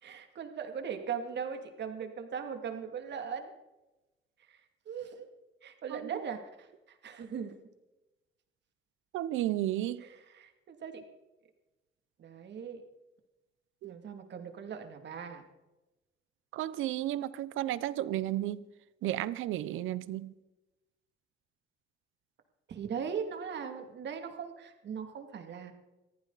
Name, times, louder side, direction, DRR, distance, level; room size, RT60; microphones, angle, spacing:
voice 1, 0.0-3.5 4.4-4.6 4.9-5.3 5.6-7.5 10.0-11.0 12.2-12.8 13.8-15.4 22.7-25.7, right 7 dB, 60° right, 5 dB, 2.7 m, -39 dB
voice 2, 9.1-10.0 13.8-13.9 16.5-18.6 19.0-20.3, right 13 dB, 85° right, 17 dB, 0.8 m, -33 dB
22.0 x 15.0 x 4.1 m, 1.0 s
cardioid pair, 90°, 20 cm